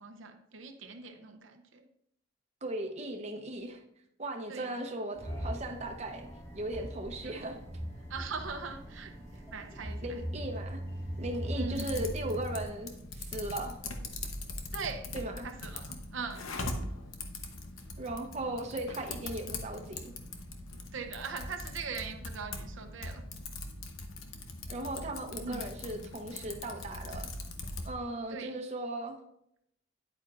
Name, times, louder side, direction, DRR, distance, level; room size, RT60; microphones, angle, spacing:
voice 1, 0.0-1.9 4.5-4.9 7.2-7.4 8.1-10.2 11.6-12.1 14.7-15.1 15.4-16.5 20.9-23.2 25.4-25.7 28.3-28.6, right 5 dB, 75° right, 6 dB, 0.7 m, -41 dB
voice 2, 2.6-3.8 4.2-6.3 6.5-7.6 10.0-10.8 11.2-13.8 15.1-15.5 18.0-20.1 24.7-27.3 27.9-29.2, right 1 dB, 35° right, 3 dB, 0.8 m, -37 dB
sound 1, 5.1-12.6, equal, 15° left, 1.7 m, -40 dB
Typing, 11.7-27.9, left 2 dB, 90° left, 0.9 m, -41 dB
9.6 x 8.7 x 2.5 m, 0.76 s
head